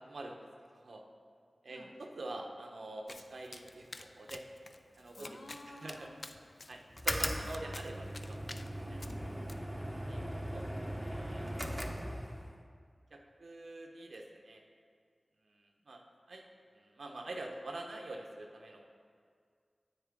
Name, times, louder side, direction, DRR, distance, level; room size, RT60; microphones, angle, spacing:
voice 1, 0.7-1.0 1.6-4.4 5.0-5.3 5.7-6.1 6.7-8.4 8.9-9.0 10.1-10.6 11.0-11.5 13.1-14.6 15.4-16.4 16.7-18.8, right 2 dB, 90° right, 1 dB, 0.9 m, -46 dB
Domestic sounds home sounds, 3.1-9.5, left 2 dB, 55° left, 0.4 m, -51 dB
voice 2, 5.2-6.2 7.2-8.2 8.8-10.0 11.3-11.6, left 1 dB, 85° left, 1 dB, 1.0 m, -53 dB
sound 1, 6.9-12.6, equal, ahead, 0.9 m, -38 dB
9.8 x 8.2 x 3.6 m, 2.1 s
wide cardioid pair, 45°, 0 cm